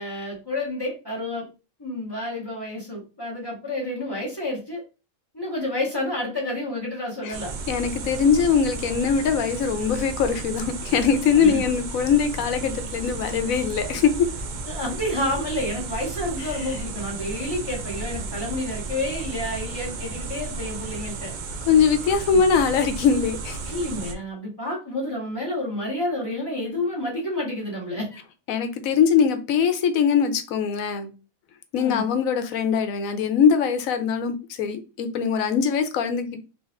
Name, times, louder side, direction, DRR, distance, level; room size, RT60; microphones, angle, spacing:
voice 1, 0.0-1.5 1.8-4.8 5.3-7.5 11.4-11.8 14.7-21.3 22.3-22.4 23.7-28.2 31.7-32.1, left 1 dB, 20° left, -5 dB, 1.4 m, -29 dB
sound 1, 7.3-24.1, right 3 dB, 80° right, 0.4 m, -34 dB
voice 2, 7.7-14.3 16.4-16.5 21.7-23.6 28.5-31.1 31.7-36.4, left 6 dB, 85° left, 8 dB, 1.1 m, -22 dB
4.0 x 3.3 x 2.5 m, 0.31 s
omnidirectional pair, 1.4 m